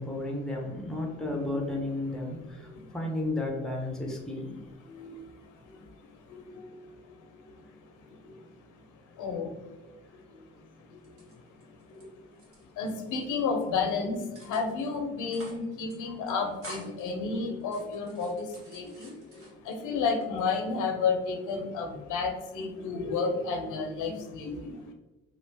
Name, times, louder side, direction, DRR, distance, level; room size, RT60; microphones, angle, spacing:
voice 1, 0.0-4.5 24.5-24.6, left 2 dB, ahead, 0 dB, 0.8 m, -33 dB
voice 2, 6.3-6.7 9.2-9.5 12.8-14.2 14.5-19.1 19.7-24.7, left 4 dB, 85° left, 4 dB, 0.7 m, -31 dB
sound 1, 11.0-12.0 12.3-13.2 13.6-13.9 14.3-14.9 15.2-15.6 15.9-16.0 16.3-17.1 17.6-19.8 20.2-20.8, right 1 dB, 45° right, 1.4 m, -49 dB
3.0 x 2.4 x 3.3 m, 1.1 s
cardioid pair, 90°, 30 cm